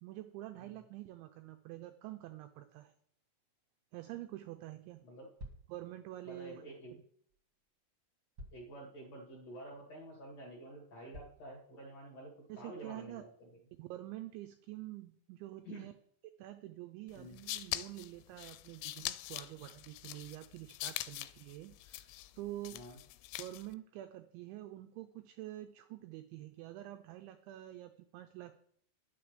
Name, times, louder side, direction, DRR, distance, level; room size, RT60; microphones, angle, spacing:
voice 1, 0.0-2.9 3.9-5.1 5.7-6.6 12.5-13.2 13.8-15.9 16.4-22.1 22.4-22.9 23.4-28.6, right 15 dB, 90° right, 8 dB, 2.6 m, -47 dB
sound 1, 5.4-5.7 7.3-7.4 8.4-8.7 9.3-9.4 10.0-10.1 11.1-11.5, left 1 dB, 60° right, 1.2 m, -50 dB
voice 2, 6.2-7.0 8.5-13.5 15.6-15.9 17.1-17.4 22.7-23.0, right 1 dB, 45° left, -2 dB, 2.3 m, -50 dB
sound 2, 17.1-23.7, left 17 dB, 85° left, 3.2 m, -43 dB
9.9 x 7.4 x 6.7 m, 0.64 s
omnidirectional pair, 6.0 m